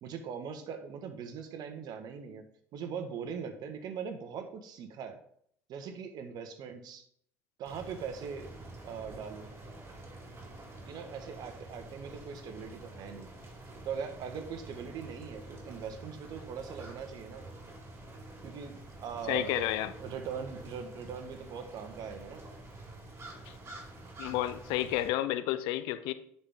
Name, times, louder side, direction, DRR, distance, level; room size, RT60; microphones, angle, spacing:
voice 1, 0.0-2.4 2.7-5.2 5.7-7.0 7.6-8.5 8.8-9.5 10.9-13.3 13.8-17.4 18.4-18.7 19.0-19.7 20.0-22.4, right 6 dB, 60° right, 7 dB, 1.5 m, -41 dB
sound 1, 7.6-25.1, right 2 dB, 30° right, 4.0 m, -48 dB
voice 2, 19.3-19.9 23.5-23.6 24.2-26.1, left 14 dB, 70° left, 13 dB, 0.7 m, -31 dB
10.0 x 6.1 x 3.7 m, 0.66 s
hypercardioid pair, 60°, 8 cm